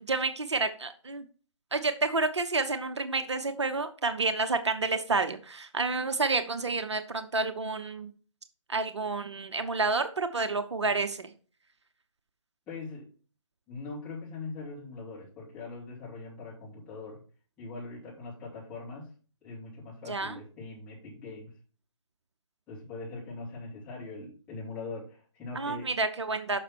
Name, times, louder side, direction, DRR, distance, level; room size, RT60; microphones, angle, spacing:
voice 1, 0.1-1.2 1.7-8.1 8.7-11.3 20.1-20.4 25.6-26.6, right 3 dB, 60° right, 8 dB, 0.7 m, -29 dB
voice 2, 12.7-13.1 13.7-17.2 17.6-19.1 19.4-21.5 22.7-25.9, left 3 dB, 10° left, -8 dB, 2.3 m, -41 dB
6.1 x 5.8 x 4.4 m, 0.40 s
figure-of-eight pair, 145°, 17 cm